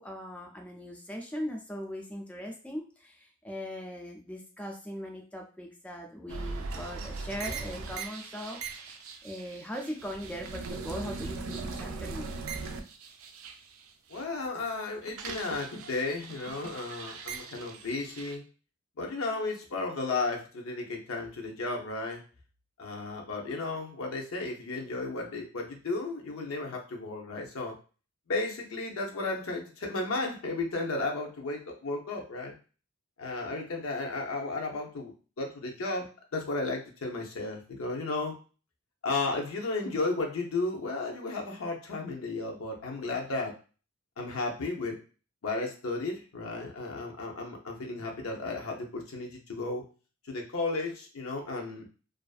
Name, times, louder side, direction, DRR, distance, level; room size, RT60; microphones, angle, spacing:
voice 1, 0.0-12.3, equal, 5° left, 1 dB, 0.3 m, -40 dB
sound 1, 6.3-14.2 14.6-18.4, right 4 dB, 80° right, 0.4 m, -40 dB
voice 2, 14.1-18.4 19.0-22.2 22.8-27.7 28.3-32.5 33.2-38.3 39.0-43.5 44.2-45.0 45.4-49.8 50.3-51.9, left 3 dB, 85° left, 1 dB, 0.6 m, -34 dB
2.4 x 2.4 x 2.3 m, 0.37 s
head